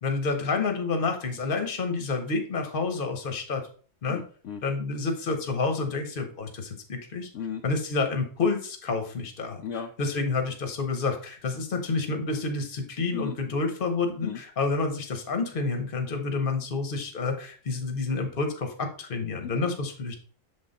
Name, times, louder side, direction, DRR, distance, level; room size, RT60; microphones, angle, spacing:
voice 1, 0.0-3.7 4.0-4.2 4.6-7.3 7.6-9.6 10.0-20.2, left 4 dB, 40° left, 5 dB, 1.1 m, -29 dB
voice 2, 4.1-4.6 7.3-7.6 9.6-9.9 13.1-13.4 14.2-14.4 19.4-19.6, left 7 dB, 65° left, 4 dB, 0.9 m, -35 dB
7.0 x 3.8 x 4.0 m, 0.42 s
omnidirectional pair, 1.5 m